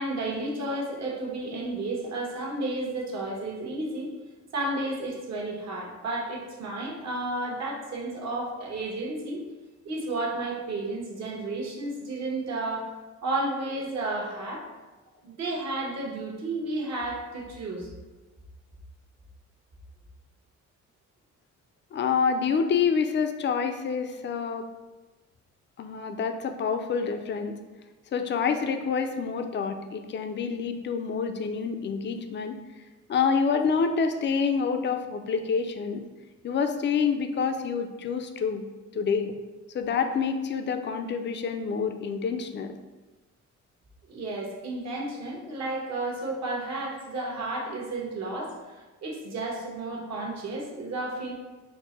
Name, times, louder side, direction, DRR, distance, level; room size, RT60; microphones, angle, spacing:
voice 1, 0.0-4.1 4.5-9.4 9.8-12.9 13.2-14.7 15.2-17.9 44.1-51.3, right 2 dB, 60° right, -2 dB, 1.1 m, -32 dB
voice 2, 21.9-24.7 25.8-27.6 28.1-32.6 33.1-36.0 36.4-38.6 38.9-39.3 39.7-42.7, left 6 dB, 40° left, 6 dB, 0.4 m, -27 dB
4.5 x 2.1 x 4.1 m, 1.2 s
cardioid pair, 90°, 30 cm